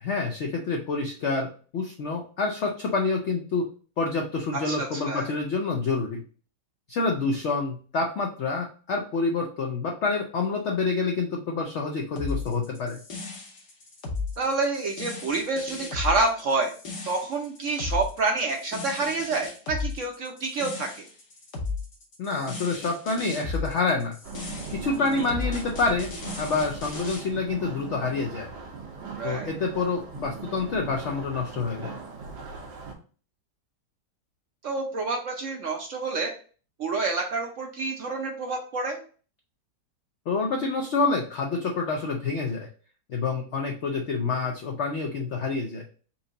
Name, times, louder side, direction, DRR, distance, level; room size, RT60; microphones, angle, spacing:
voice 1, 0.0-3.7 4.0-6.2 6.9-13.0 22.2-24.2 24.7-26.1 26.4-28.5 29.2-32.0 40.3-42.7 43.1-45.8, left 4 dB, 70° left, 1 dB, 0.6 m, -27 dB
voice 2, 4.5-5.3 14.4-16.7 17.0-21.1 25.0-25.1 29.1-29.5 34.6-36.3 36.8-39.0, right 3 dB, 60° right, 2 dB, 0.8 m, -28 dB
sound 1, 12.2-27.2, left 4 dB, 55° left, 1.2 m, -35 dB
sound 2, 24.2-32.9, right 4 dB, 85° right, 1.7 m, -39 dB
4.4 x 2.7 x 3.8 m, 0.40 s
omnidirectional pair, 1.9 m